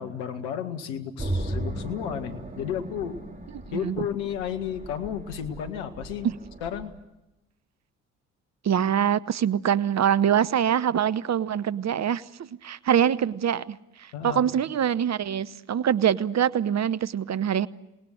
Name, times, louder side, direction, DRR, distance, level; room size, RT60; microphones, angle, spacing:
voice 1, 0.0-3.2 3.7-6.3 6.6-6.9 14.1-14.6, left 8 dB, 75° left, 8 dB, 1.7 m, -33 dB
sound 1, 1.2-6.9, right 1 dB, 20° right, 4.5 m, -36 dB
voice 2, 3.5-4.1 6.2-6.3 8.6-17.7, right 9 dB, 45° right, 17 dB, 0.9 m, -24 dB
27.0 x 19.5 x 7.8 m, 0.95 s
hypercardioid pair, 50°, 39 cm